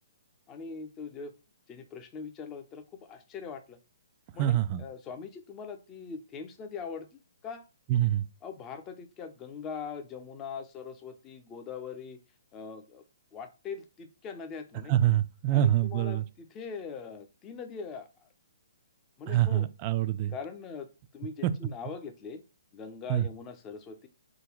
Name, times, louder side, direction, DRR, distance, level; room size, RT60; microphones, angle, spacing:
voice 1, 0.5-1.3 1.7-3.8 4.3-7.1 7.4-7.6 8.4-12.2 12.5-13.0 13.3-14.9 15.5-18.3 19.2-19.7 20.3-22.4 22.7-24.1, left 5 dB, 20° left, 0.5 m, -42 dB
voice 2, 4.4-4.8 7.9-8.2 14.9-16.2 19.3-20.3 21.4-21.5 23.1-23.2, right 12 dB, 35° right, 0.3 m, -25 dB
3.7 x 2.2 x 3.0 m
figure-of-eight pair, 130°, 0 cm